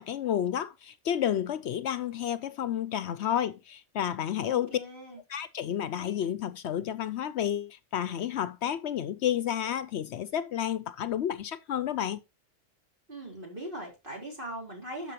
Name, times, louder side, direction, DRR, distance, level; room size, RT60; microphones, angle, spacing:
voice 1, 0.0-4.8 5.3-12.2, left 10 dB, 70° left, 0.8 m, -31 dB
voice 2, 4.4-5.2 13.1-15.1, right 1 dB, 45° right, 4.2 m, -40 dB
12.5 x 5.7 x 3.0 m
omnidirectional pair, 1.2 m